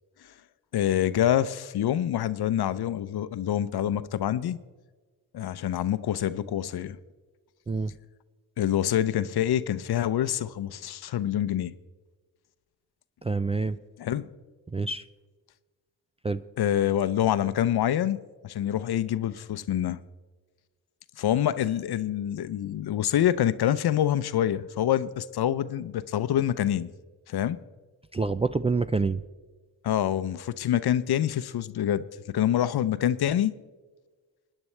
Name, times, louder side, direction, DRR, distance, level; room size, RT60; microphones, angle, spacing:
voice 1, 0.7-4.6 5.3-7.0 8.6-11.7 14.0-14.3 16.6-20.0 21.2-26.9 27.3-27.6 29.8-33.6, left 11 dB, 55° left, 0.7 m, -26 dB
voice 2, 13.2-13.8 14.7-15.0 16.2-16.4 28.1-29.2, right 4 dB, 15° right, 0.4 m, -27 dB
26.5 x 9.8 x 3.3 m
supercardioid pair, 50°, 45 cm